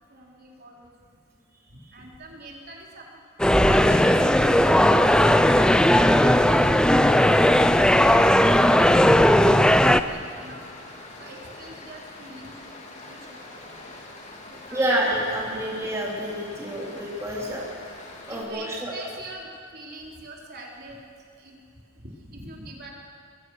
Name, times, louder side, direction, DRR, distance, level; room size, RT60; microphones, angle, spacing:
voice 1, 0.1-0.9 1.7-3.2 3.6-8.6 8.8-10.6 11.2-12.7 13.1-13.6 14.5-14.8 18.3-21.0 21.4-21.6 22.0-22.9, right 1 dB, 45° right, -2 dB, 4.1 m, -44 dB
Stream, 3.4-18.4, left 2 dB, 35° left, 3.3 m, -43 dB
sound 1, 3.4-10.0, left 1 dB, 5° left, 0.6 m, -17 dB
voice 2, 14.7-17.6 18.3-18.9, right 1 dB, 15° right, -4 dB, 3.3 m, -28 dB
25.5 x 22.5 x 6.5 m, 2.4 s
head